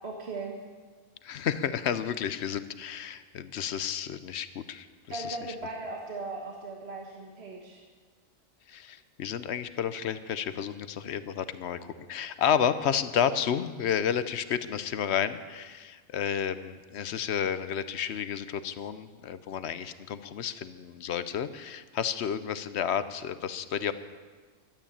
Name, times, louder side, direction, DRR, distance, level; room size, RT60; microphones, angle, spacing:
voice 1, 0.0-0.6 5.1-7.8, right 3 dB, 55° right, 0 dB, 1.6 m, -38 dB
voice 2, 1.2-5.4 8.7-23.9, left 8 dB, 65° left, 13 dB, 0.9 m, -31 dB
12.5 x 9.1 x 8.7 m, 1.5 s
omnidirectional pair, 1.3 m